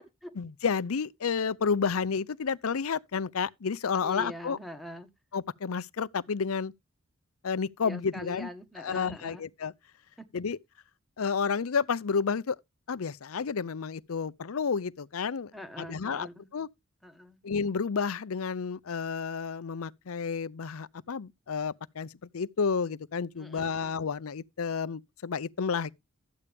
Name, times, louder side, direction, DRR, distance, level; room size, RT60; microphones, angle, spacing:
voice 1, 0.4-4.6 5.3-6.7 7.4-8.5 8.8-9.7 10.3-10.6 11.2-12.6 12.9-15.5 15.8-16.3 16.5-16.7 17.4-25.9, left 5 dB, 90° left, 0.6 m, -31 dB
voice 2, 4.0-5.1 7.8-9.5 10.2-10.3 15.5-16.5 17.0-17.4 23.4-24.0, left 1 dB, ahead, 1.2 m, -43 dB
13.0 x 8.4 x 3.5 m
head